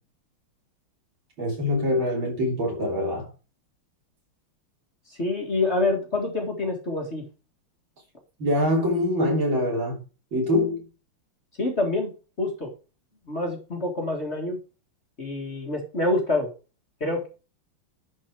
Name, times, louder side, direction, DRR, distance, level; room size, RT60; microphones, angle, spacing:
voice 1, 1.4-3.3 8.4-10.0 10.3-10.8, left 1 dB, 60° right, 4.0 m, -24 dB
voice 2, 5.1-7.2 11.6-12.1 12.4-12.7 13.3-14.6 15.2-16.5 17.0-17.3, left 2 dB, 30° left, 2.0 m, -26 dB
11.0 x 4.7 x 4.6 m
omnidirectional pair, 2.4 m